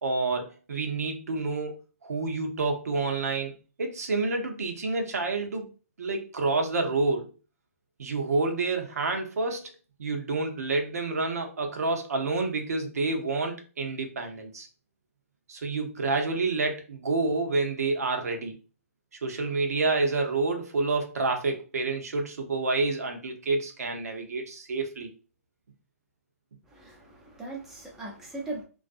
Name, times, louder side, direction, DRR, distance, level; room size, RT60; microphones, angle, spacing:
voice 1, 0.0-1.8 2.0-5.7 6.0-7.3 8.0-9.7 10.0-14.7 15.5-18.5 19.2-25.1, right 3 dB, 85° right, 4 dB, 0.7 m, -28 dB
voice 2, 26.7-28.6, right 2 dB, 5° right, -4 dB, 0.6 m, -39 dB
2.4 x 2.2 x 2.5 m, 0.35 s
hypercardioid pair, 150°, 8 cm